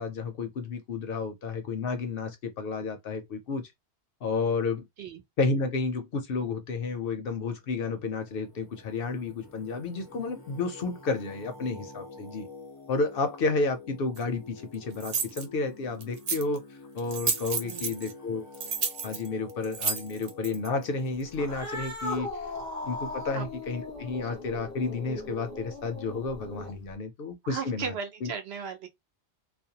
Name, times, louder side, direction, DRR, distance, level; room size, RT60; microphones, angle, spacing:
voice 1, 0.0-3.7 4.2-4.8 5.4-12.5 12.9-16.6 16.9-18.4 19.0-22.3 22.8-27.9 28.2-28.3, left 3 dB, 60° left, 0.7 m, -31 dB
Singing, 7.5-21.4, left 3 dB, 30° left, 0.5 m, -48 dB
sound 1, 14.2-14.3 15.0-15.4 16.0-16.6 17.0-18.1 18.5-20.7, right 6 dB, 50° right, 0.5 m, -31 dB
voice 2, 17.6-17.9 23.3-23.5 27.4-28.9, right 6 dB, 70° right, 0.9 m, -36 dB
Cat, 21.3-26.9, left 2 dB, 15° right, 0.9 m, -38 dB
2.4 x 2.1 x 2.7 m
omnidirectional pair, 1.2 m